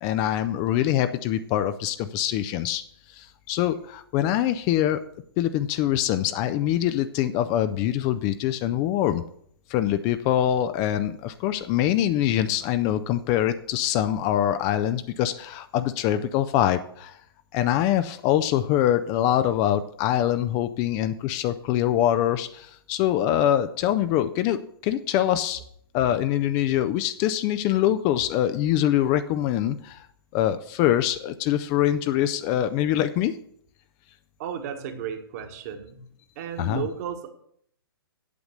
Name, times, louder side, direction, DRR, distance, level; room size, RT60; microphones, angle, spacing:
voice 1, 0.0-2.8 3.1-5.0 5.4-9.2 9.7-17.2 17.5-25.6 25.9-30.1 30.3-33.4 36.6-36.9, left 11 dB, 25° left, 11 dB, 0.4 m, -24 dB
voice 2, 34.4-36.0 36.3-37.3, right 8 dB, 40° right, 6 dB, 1.4 m, -33 dB
8.4 x 7.1 x 6.4 m, 0.67 s
figure-of-eight pair, 115°, 13 cm